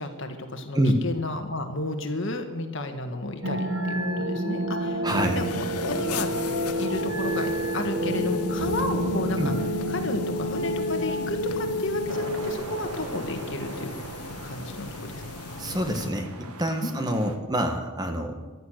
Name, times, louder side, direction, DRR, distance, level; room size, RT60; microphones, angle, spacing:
voice 1, 0.0-5.1 5.4-6.3 6.8-9.5 9.9-13.9 14.4-14.9 16.8-17.4, left 2 dB, 55° left, 6 dB, 1.7 m, -32 dB
sound 1, 3.4-12.5, equal, 60° right, 1.4 m, -28 dB
voice 2, 5.0-5.4 9.4-9.5 15.6-16.3 16.6-18.3, equal, 20° right, 6 dB, 1.2 m, -26 dB
sound 2, 5.1-16.1, left 4 dB, 90° left, 1.0 m, -38 dB
sound 3, 12.1-17.4, right 3 dB, 85° right, 1.5 m, -41 dB
15.0 x 12.0 x 6.5 m, 1.3 s
head